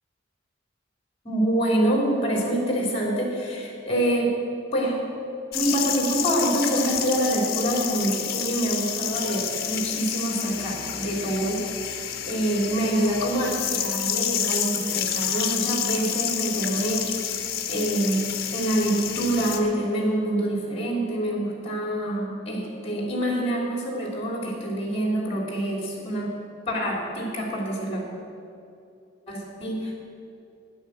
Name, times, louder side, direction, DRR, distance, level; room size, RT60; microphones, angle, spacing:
voice 1, 1.2-4.4 4.7-5.0 5.5-11.7 12.0-26.4 26.7-28.0 29.3-29.9, right 1 dB, 30° left, -1 dB, 3.2 m, -26 dB
sound 1, 5.5-19.6, left 8 dB, 55° left, 1.2 m, -29 dB
11.0 x 9.9 x 8.0 m, 2.6 s
head